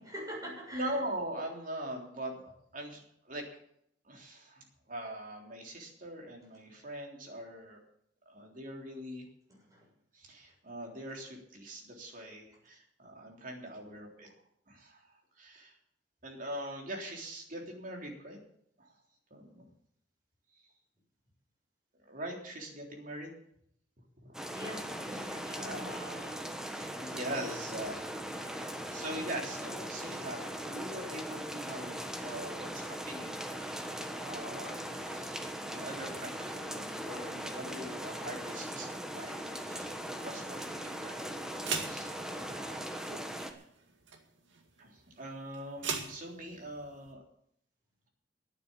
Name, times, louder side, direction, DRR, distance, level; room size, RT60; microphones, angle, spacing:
voice 1, 0.0-1.0 9.5-9.9 24.5-26.4, equal, 20° right, -3 dB, 6.9 m, -45 dB
voice 2, 0.7-3.4 4.0-7.8 8.2-9.3 10.1-14.3 14.7-15.8 16.2-18.4 18.8-18.9 19.3-19.6 22.0-23.3 24.2-24.4 25.1-28.1 28.3-39.9 40.2-41.3 41.8-43.0 43.3-43.6 44.8-47.2, right 1 dB, 45° right, 1 dB, 3.5 m, -43 dB
sound 1, 24.3-43.5, equal, 5° right, 1.3 m, -40 dB
sound 2, 41.2-47.1, right 5 dB, 85° right, 2.1 m, -43 dB
11.5 x 9.6 x 8.7 m, 0.71 s
head